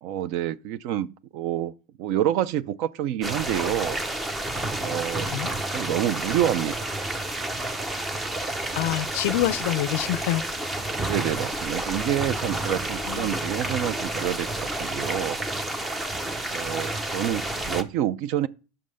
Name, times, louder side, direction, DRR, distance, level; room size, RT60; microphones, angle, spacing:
voice 1, 0.0-1.7 2.0-4.0 4.8-5.3 5.7-6.9 11.0-15.4 16.5-18.5, right 11 dB, 60° right, 0.4 m, -28 dB
sound 1, 3.2-17.8, right 1 dB, 15° right, 0.7 m, -30 dB
voice 2, 5.2-5.5 8.8-10.4 13.0-13.3, left 15 dB, 75° left, 0.4 m, -26 dB
5.6 x 5.4 x 6.4 m
supercardioid pair, 135°, 0 cm